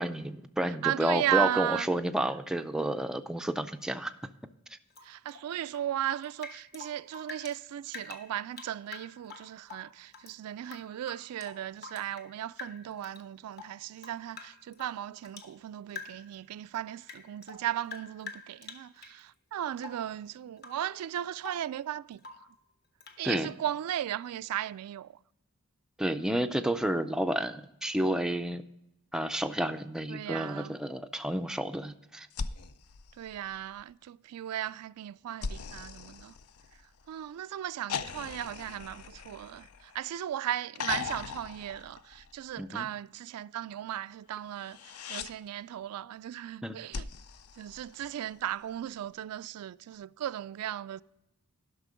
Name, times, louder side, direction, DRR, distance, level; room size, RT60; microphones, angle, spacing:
voice 1, 0.0-4.2 4.7-4.8 23.2-23.5 26.0-28.6 29.1-32.3 42.6-42.9 46.6-46.8, right 1 dB, 5° right, 0.3 m, -30 dB
voice 2, 0.8-1.9 5.0-22.2 23.2-25.2 30.1-30.8 33.2-36.3 37.1-47.1 47.6-51.0, right 11 dB, 80° right, 0.3 m, -36 dB
Rain / Drip, 4.9-7.6 7.9-10.3 10.6-12.3 12.6-13.2 13.5-15.5 15.9-16.4 16.7-19.2 19.8-20.1 20.6-20.9 21.2-21.7 22.2-22.5 23.0-23.2, left 4 dB, 45° left, 1.1 m, -47 dB
sound 1, 32.3-33.9 35.4-37.1 37.9-40.2 40.7-42.6 44.5-45.3 46.9-48.4 49.9-50.0, left 5 dB, 85° left, 0.5 m, -40 dB
12.0 x 6.0 x 4.9 m
head